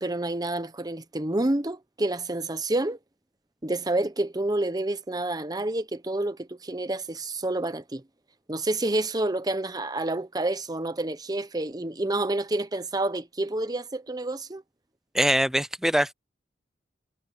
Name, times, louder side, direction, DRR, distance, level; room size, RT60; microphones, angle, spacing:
voice 1, 0.0-3.0 3.6-8.0 8.5-14.6, right 2 dB, 20° right, 1.0 m, -28 dB
voice 2, 15.1-16.1, equal, 5° right, 0.6 m, -23 dB
head